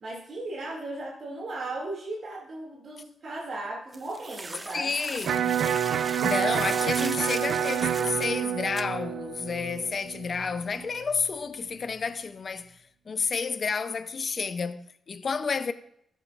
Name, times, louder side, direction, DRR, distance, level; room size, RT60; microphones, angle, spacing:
voice 1, 0.0-4.9, right 2 dB, 60° right, 2.3 m, -36 dB
sound 1, 3.9-8.3 8.8-8.9, right 2 dB, 25° right, 0.5 m, -38 dB
voice 2, 4.7-5.6 6.2-12.7 13.1-15.7, left 5 dB, 50° left, 0.6 m, -30 dB
Electric guitar, 5.2-11.3, right 9 dB, 85° right, 0.5 m, -28 dB
14.0 x 7.5 x 2.5 m
cardioid pair, 80°, 0 cm